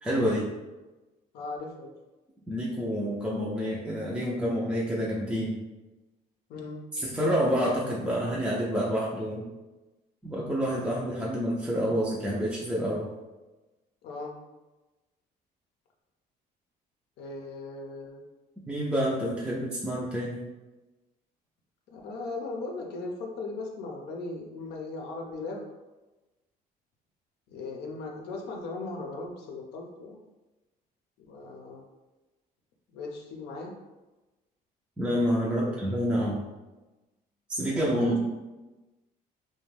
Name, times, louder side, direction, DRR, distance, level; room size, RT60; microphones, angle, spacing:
voice 1, 0.0-0.5 2.5-5.6 6.9-9.4 10.2-13.1 18.7-20.4 35.0-36.4 37.5-38.2, equal, 5° right, -6 dB, 0.4 m, -28 dB
voice 2, 1.3-1.9 6.5-6.8 14.0-14.3 17.2-18.2 21.9-25.6 27.5-30.2 31.2-31.8 32.9-33.7 35.5-35.7 37.9-38.2, left 3 dB, 80° left, 0 dB, 0.5 m, -38 dB
2.4 x 2.1 x 3.2 m, 1.1 s
cardioid pair, 110°, 17 cm